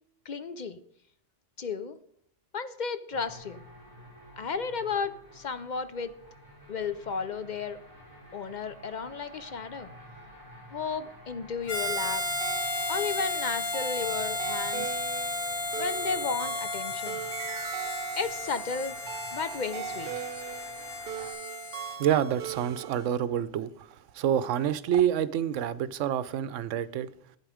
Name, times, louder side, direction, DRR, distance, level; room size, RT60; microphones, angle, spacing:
voice 1, 0.3-0.8 1.6-2.0 2.5-3.6 4.4-6.2 6.7-7.8 8.3-9.9 10.7-12.3 12.9-15.0 15.8-17.2 18.2-19.0 19.3-20.1, left 5 dB, 50° left, 0.6 m, -33 dB
sound 1, 3.1-21.3, equal, 30° left, 4.2 m, -50 dB
Harmonica, 11.7-22.0, left 2 dB, 80° left, 2.0 m, -34 dB
sound 2, 12.4-23.1, right 9 dB, 60° right, 0.6 m, -40 dB
voice 2, 22.0-27.1, right 10 dB, 80° right, 1.0 m, -28 dB
11.0 x 9.2 x 4.9 m
omnidirectional pair, 1.3 m